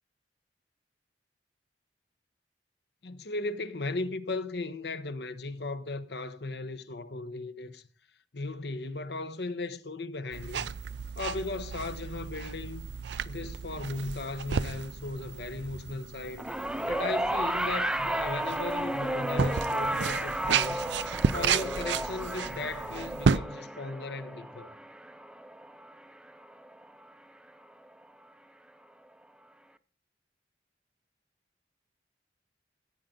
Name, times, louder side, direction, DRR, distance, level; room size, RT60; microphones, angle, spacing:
voice 1, 3.0-7.8 8.3-10.7 11.2-12.9 13.2-16.4 16.9-20.8 21.3-24.7, left 3 dB, 65° left, 1.0 m, -36 dB
sound 1, 10.3-23.4, right 6 dB, 80° right, 0.5 m, -33 dB
sound 2, 16.4-26.8 27.9-28.0, right 1 dB, 5° right, 0.5 m, -33 dB
15.0 x 9.1 x 3.8 m
head